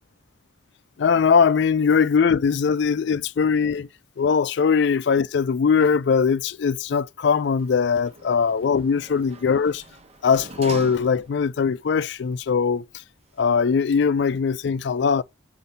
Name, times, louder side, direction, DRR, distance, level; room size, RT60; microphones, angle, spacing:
voice 1, 1.0-3.9 4.2-9.8 10.2-12.9 13.4-15.2, left 6 dB, 60° left, 0.3 m, -21 dB
Sliding door, 7.5-11.6 12.0-12.1, right 3 dB, 30° right, 0.6 m, -42 dB
6.6 x 2.6 x 5.5 m
head